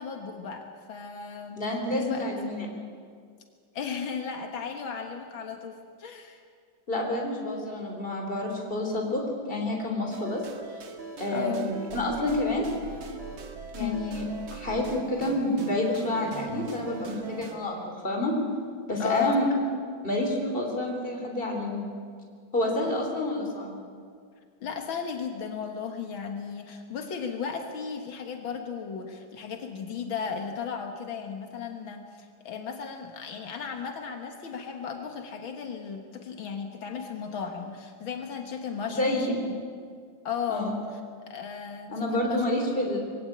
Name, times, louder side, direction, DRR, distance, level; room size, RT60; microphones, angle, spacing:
voice 1, 0.0-1.6 1.9-2.3 3.7-6.4 11.3-11.7 13.8-14.0 19.0-19.4 23.0-23.2 24.6-39.2 40.2-41.0 41.3-42.4, left 6 dB, 85° left, 4 dB, 2.3 m, -35 dB
voice 2, 1.6-2.7 6.9-10.4 11.2-12.7 13.7-14.2 14.5-18.4 18.9-19.5 20.0-21.9 22.5-23.8 38.9-39.4 40.5-40.8 41.9-43.0, left 1 dB, 25° left, 1 dB, 3.7 m, -29 dB
sound 1, 10.1-17.6, right 4 dB, 90° right, 2.7 m, -41 dB
22.5 x 17.0 x 8.7 m, 2.1 s
omnidirectional pair, 2.1 m